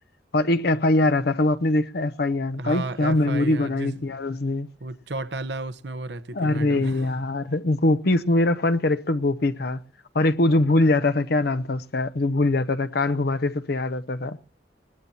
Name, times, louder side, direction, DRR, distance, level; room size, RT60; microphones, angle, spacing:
voice 1, 0.3-4.7 6.3-9.8 10.1-14.4, left 2 dB, 65° left, 0.8 m, -22 dB
voice 2, 2.6-3.9 4.8-7.1, right 2 dB, 75° right, 0.9 m, -33 dB
20.5 x 17.5 x 2.8 m
head